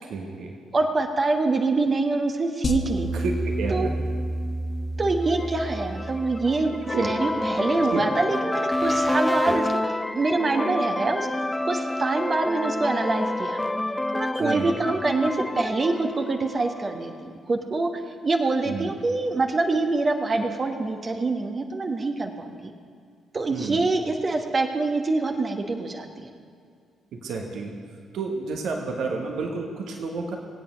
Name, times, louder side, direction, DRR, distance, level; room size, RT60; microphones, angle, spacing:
voice 1, 0.1-0.6 3.1-3.9 6.9-7.1 7.9-8.1 14.4-14.7 18.6-18.9 23.5-23.8 27.1-27.8 28.1-30.4, right 4 dB, 55° right, 2 dB, 1.3 m, -30 dB
voice 2, 0.7-3.1 3.7-3.9 5.0-11.3 11.7-13.6 14.1-17.9 18.2-22.7 23.3-26.3, right 3 dB, 35° right, 4 dB, 1.2 m, -25 dB
sound 1, 2.6-7.0, right 1 dB, 35° left, 1.2 m, -29 dB
sound 2, 5.3-17.1, left 1 dB, 10° left, 0.5 m, -28 dB
19.0 x 8.9 x 5.2 m, 2.3 s
figure-of-eight pair, 40°, 0 cm